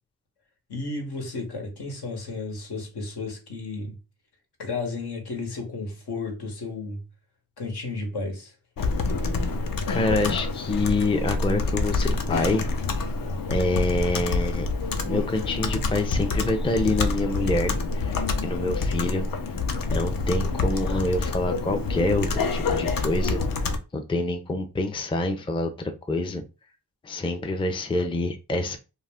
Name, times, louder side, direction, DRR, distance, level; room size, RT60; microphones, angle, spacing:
voice 1, 0.7-3.9 4.6-7.0 7.6-8.5 11.7-11.8 14.6-14.7, left 3 dB, 80° left, 1.0 m, -33 dB
Computer keyboard, 8.8-23.8, left 3 dB, 60° left, 0.6 m, -27 dB
voice 2, 9.9-12.7 13.5-14.7 15.0-26.4 27.0-28.8, left 2 dB, 15° left, 0.4 m, -27 dB
2.3 x 2.1 x 3.4 m
cardioid pair, 55°, 38 cm